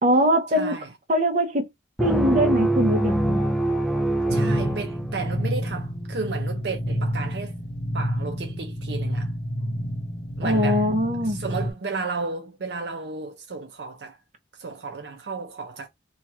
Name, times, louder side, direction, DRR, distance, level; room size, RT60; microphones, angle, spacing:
voice 1, 0.0-0.7 1.1-1.7 2.0-3.4 10.4-11.4, equal, 40° right, 0.8 m, -22 dB
voice 2, 0.5-0.9 4.3-7.6 7.9-9.3 10.4-10.9 11.2-14.2 14.5-15.9, right 4 dB, 70° right, 0.6 m, -33 dB
sound 1, 2.0-5.6, right 1 dB, ahead, 0.4 m, -24 dB
sound 2, 4.3-11.7, equal, 65° left, 0.8 m, -29 dB
3.1 x 2.4 x 4.2 m
head